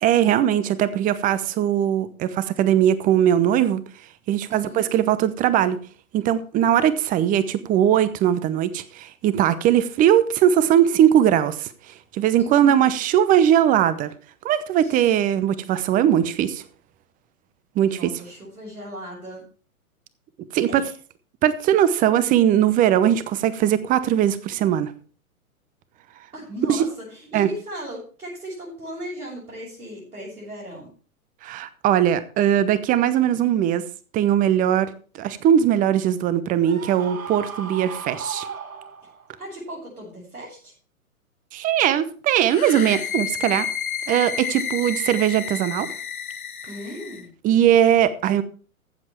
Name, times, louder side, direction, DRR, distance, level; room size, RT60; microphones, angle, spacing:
voice 1, 0.0-3.8 4.3-5.8 6.1-11.7 12.1-14.1 14.4-16.6 17.8-18.1 20.5-20.8 21.4-24.9 26.7-26.9 27.3-27.5 31.4-33.8 34.1-38.5 41.5-43.7 44.1-45.9 47.4-48.4, right 10 dB, 20° right, 0.8 m, -20 dB
voice 2, 4.5-4.8 12.4-12.8 14.8-15.2 17.8-19.4 20.7-20.9 26.3-30.9 39.4-40.7 46.7-47.3, equal, 90° right, 6.6 m, -37 dB
Screaming, 36.6-39.3, right 6 dB, 70° right, 1.8 m, -35 dB
sound 1, 42.4-47.3, left 8 dB, 75° left, 1.5 m, -31 dB
14.5 x 7.5 x 4.4 m
figure-of-eight pair, 115°, 43 cm